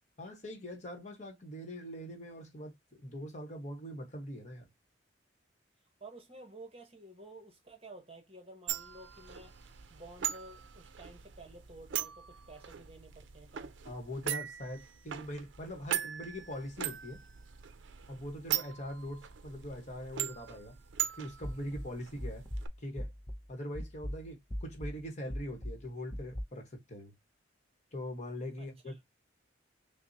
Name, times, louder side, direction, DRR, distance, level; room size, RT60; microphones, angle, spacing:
voice 1, 0.2-4.7 13.8-17.2 18.1-20.8 21.2-22.4 22.8-23.1 23.5-27.1 27.9-28.9, equal, 40° left, 1.0 m, -42 dB
voice 2, 6.0-9.5 9.9-13.8 28.6-29.0, right 2 dB, 30° right, 0.9 m, -52 dB
sound 1, 8.7-22.7, right 11 dB, 75° right, 0.5 m, -40 dB
sound 2, 21.4-23.5 23.7-26.4, equal, 15° left, 0.5 m, -40 dB
5.9 x 2.1 x 2.6 m
head